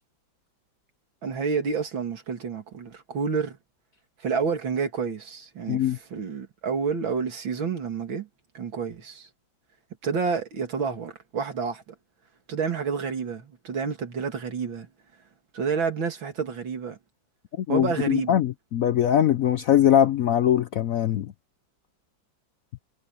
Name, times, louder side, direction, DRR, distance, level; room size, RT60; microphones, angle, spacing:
voice 1, 1.2-3.6 4.2-8.3 8.5-9.3 10.0-11.9 12.5-14.9 15.5-17.0 17.7-18.4, right 5 dB, 90° right, 3.1 m, -29 dB
voice 2, 17.6-21.3, left 10 dB, 70° left, 0.8 m, -22 dB
omnidirectional pair, 2.1 m